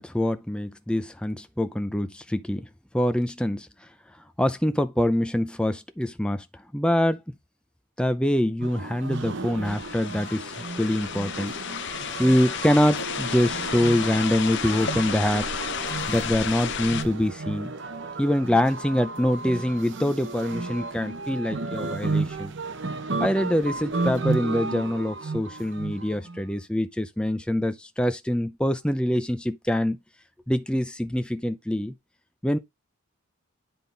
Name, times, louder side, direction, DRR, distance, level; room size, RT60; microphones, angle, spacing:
voice 1, 0.0-2.7 2.9-3.7 4.4-6.4 6.7-7.2 8.0-11.5 12.2-15.6 16.1-17.7 18.2-22.5 23.2-30.0 30.5-31.9 32.4-32.6, left 1 dB, 5° left, 0.5 m, -25 dB
sound 1, 8.6-26.4, right 3 dB, 55° right, 0.9 m, -33 dB
sound 2, 9.6-17.0, left 7 dB, 55° left, 0.6 m, -32 dB
10.5 x 3.7 x 3.9 m
head